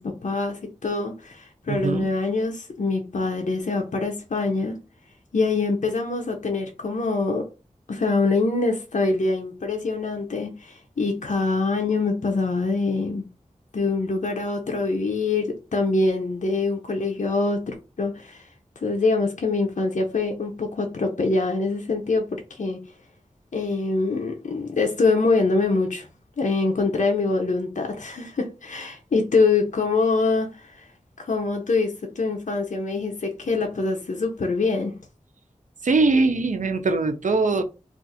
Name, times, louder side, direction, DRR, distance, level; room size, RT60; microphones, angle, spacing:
voice 1, 0.0-4.7 5.3-7.5 7.9-13.2 13.7-18.5 18.8-22.8 23.5-26.1 26.4-30.9 31.2-34.9, left 3 dB, 75° left, 0.6 m, -24 dB
voice 2, 1.7-2.1 35.8-37.6, right 3 dB, 80° right, 0.5 m, -21 dB
2.5 x 2.4 x 3.9 m
wide cardioid pair, 50°, 13 cm